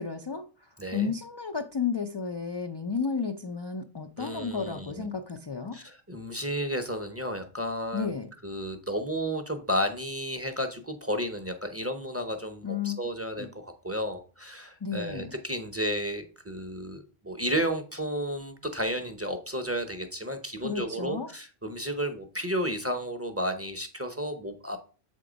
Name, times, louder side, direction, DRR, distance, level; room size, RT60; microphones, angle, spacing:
voice 1, 0.0-5.8 7.9-8.3 12.6-13.0 13.4-13.5 14.8-15.4 20.6-21.3, left 5 dB, 40° left, 0.4 m, -32 dB
voice 2, 0.8-1.1 4.2-5.1 5.7-8.2 8.4-24.8, equal, 15° right, 0.6 m, -32 dB
7.6 x 3.7 x 5.0 m
omnidirectional pair, 1.0 m